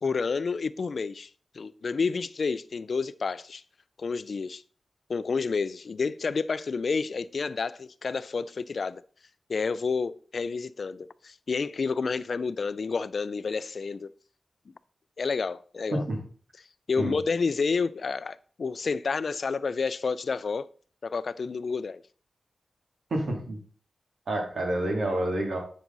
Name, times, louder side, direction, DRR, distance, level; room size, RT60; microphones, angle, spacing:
voice 1, 0.0-1.3 1.5-3.6 4.0-4.6 5.1-9.0 9.5-14.1 15.2-16.1 16.9-20.7 21.0-22.0, left 4 dB, 60° left, 0.4 m, -29 dB
voice 2, 23.1-23.6 24.3-25.6, right 1 dB, 75° right, 2.4 m, -28 dB
8.3 x 6.2 x 3.9 m
wide cardioid pair, 80°, 0 cm